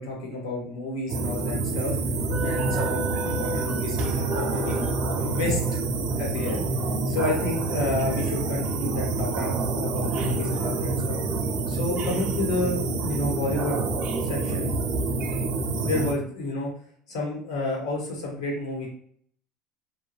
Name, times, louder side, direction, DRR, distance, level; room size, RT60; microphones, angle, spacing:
voice 1, 0.0-5.6 6.2-6.7 7.1-11.2 11.7-13.8 14.2-14.7 15.7-16.7 17.1-18.9, left 2 dB, 85° left, -2 dB, 1.3 m, -30 dB
sound 1, 1.1-16.1, right 3 dB, 60° right, 0.5 m, -27 dB
2.6 x 2.2 x 3.1 m, 0.62 s
hypercardioid pair, 75°, 2 cm